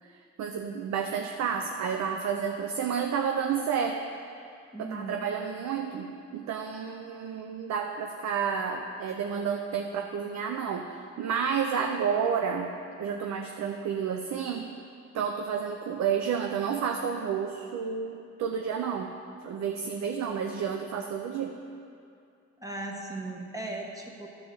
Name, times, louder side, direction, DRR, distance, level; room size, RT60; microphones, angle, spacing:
voice 1, 0.0-4.0 4.8-12.7 13.0-14.8 15.1-19.1 19.4-21.6, right 7 dB, 65° right, 4 dB, 0.6 m, -30 dB
voice 2, 4.7-5.3 22.6-24.3, right 2 dB, 10° right, -1 dB, 1.3 m, -37 dB
11.0 x 3.8 x 7.0 m, 2.5 s
cardioid pair, 90°, 30 cm